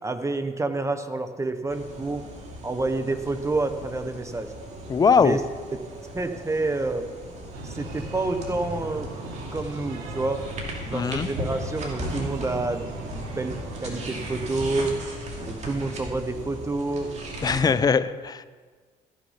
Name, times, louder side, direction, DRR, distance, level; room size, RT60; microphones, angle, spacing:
voice 1, 0.0-2.2 2.6-4.5 5.2-5.4 5.7-5.9 6.1-7.1 7.6-9.1 9.5-10.4 10.9-12.9 13.1-13.5 13.8-15.0 15.4-17.2 17.6-17.7, right 2 dB, 20° right, 9 dB, 1.0 m, -28 dB
sound 1, 1.7-17.6, equal, 50° right, 2.6 m, -37 dB
voice 2, 4.9-5.4 10.9-11.3 17.4-18.4, left 5 dB, 25° left, 14 dB, 0.5 m, -21 dB
Breathing, 7.5-15.0, right 2 dB, 85° right, 1.4 m, -38 dB
14.0 x 6.2 x 5.7 m, 1.5 s
supercardioid pair, 80°, 15 cm